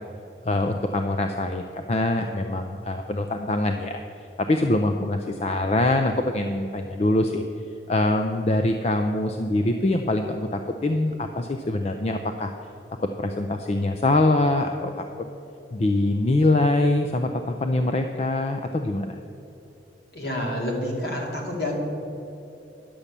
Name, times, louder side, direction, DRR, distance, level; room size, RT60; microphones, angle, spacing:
voice 1, 0.4-4.0 4.4-7.4 7.9-12.5 13.2-14.9 15.7-19.2, left 2 dB, 35° left, 6 dB, 0.4 m, -24 dB
voice 2, 20.1-21.8, left 1 dB, 60° left, -1 dB, 2.2 m, -28 dB
10.5 x 6.7 x 7.2 m, 2.9 s
head